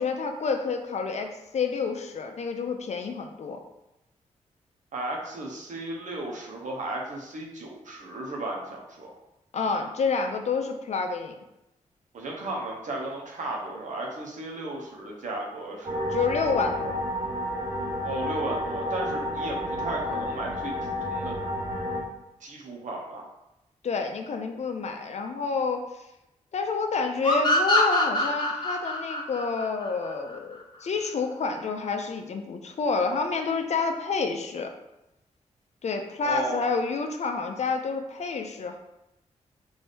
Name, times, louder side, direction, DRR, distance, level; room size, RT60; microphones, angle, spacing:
voice 1, 0.0-3.6 9.5-11.4 16.1-17.0 23.8-25.8 26.5-34.7 35.8-38.8, left 4 dB, 60° left, 5 dB, 0.5 m, -29 dB
voice 2, 4.9-9.1 12.1-16.2 18.0-20.7 21.0-21.4 22.4-23.2 36.2-36.6, right 2 dB, 75° right, -2 dB, 1.0 m, -35 dB
sound 1, 15.8-22.0, left 1 dB, 30° right, 1.0 m, -31 dB
sound 2, 27.2-30.6, left 2 dB, 35° left, 1.0 m, -25 dB
4.1 x 2.7 x 3.4 m, 0.90 s
cardioid pair, 65°, 13 cm